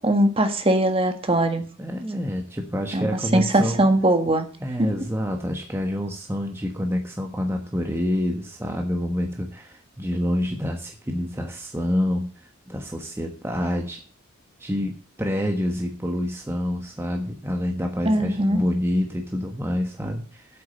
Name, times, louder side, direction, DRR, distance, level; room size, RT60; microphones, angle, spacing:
voice 1, 0.0-1.7 2.9-4.5 4.8-4.9 18.0-18.6, right 1 dB, 25° right, 7 dB, 1.6 m, -21 dB
voice 2, 1.8-3.9 4.6-14.0 14.6-20.6, equal, 10° right, 2 dB, 1.3 m, -27 dB
8.6 x 8.3 x 9.1 m, 0.41 s
head